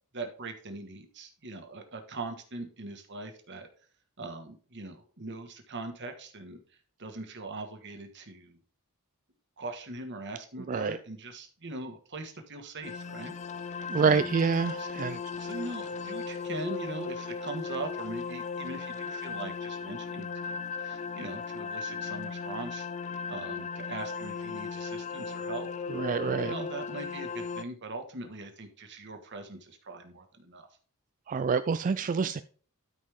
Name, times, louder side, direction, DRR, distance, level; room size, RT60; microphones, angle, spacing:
voice 1, 0.1-3.7 4.2-6.6 7.0-8.6 9.6-13.3 14.0-14.3 14.8-14.9 15.4-25.7 26.4-30.7, right 2 dB, 55° right, 6 dB, 1.6 m, -41 dB
sound 1, 12.8-27.6, left 5 dB, 30° left, 0.5 m, -37 dB
voice 2, 13.9-15.2 25.9-26.5 31.3-32.4, right 5 dB, 35° right, 12 dB, 0.3 m, -27 dB
12.5 x 5.3 x 3.6 m, 0.43 s
head